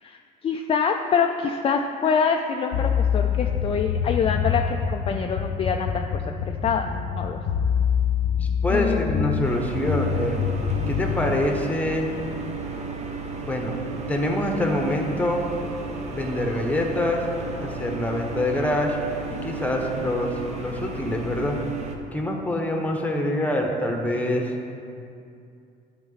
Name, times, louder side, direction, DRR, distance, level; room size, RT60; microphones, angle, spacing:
voice 1, 0.0-7.4 8.7-9.5, left 6 dB, 35° left, 3 dB, 0.4 m, -26 dB
sound 1, 2.7-11.4, left 7 dB, 85° left, 0.7 m, -26 dB
voice 2, 8.6-10.4 10.9-12.1 13.4-13.7 14.1-15.4 16.1-17.2 17.6-19.0 19.3-21.6 22.1-24.5, left 1 dB, 10° left, 2 dB, 1.0 m, -25 dB
sound 2, 9.4-21.9, right 3 dB, 40° right, 0.9 m, -34 dB
11.0 x 5.1 x 4.0 m, 2.5 s
cardioid pair, 110°, 17 cm